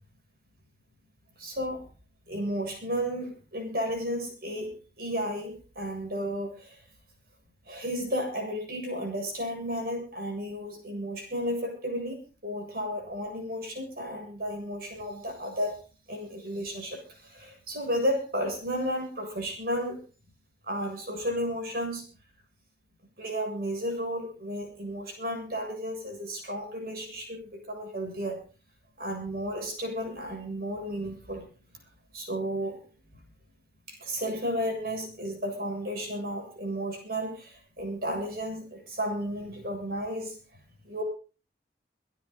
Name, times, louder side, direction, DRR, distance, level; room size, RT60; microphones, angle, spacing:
voice 1, 1.4-1.8 2.3-4.7 5.0-6.8 7.7-15.8 16.1-20.0 20.6-22.0 23.2-28.4 29.0-31.5 32.1-32.8 33.9-40.4 40.8-41.0, equal, 55° right, 2 dB, 7.3 m, -33 dB
26.0 x 10.5 x 4.0 m, 0.36 s
head